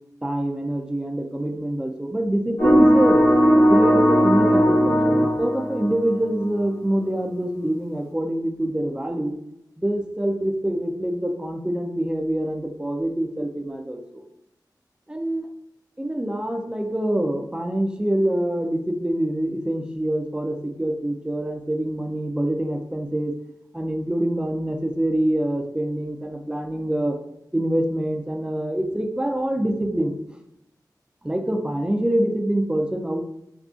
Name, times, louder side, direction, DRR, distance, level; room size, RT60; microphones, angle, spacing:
voice 1, 0.2-3.2 3.7-9.3 9.8-14.2 15.1-15.5 16.0-23.3 23.7-27.2 27.5-30.1 31.2-33.2, right 1 dB, 10° right, 3 dB, 0.4 m, -25 dB
sound 1, 2.6-6.5, equal, 85° left, 1.2 m, -17 dB
3.6 x 2.4 x 2.4 m, 0.80 s
wide cardioid pair, 60°, 7 cm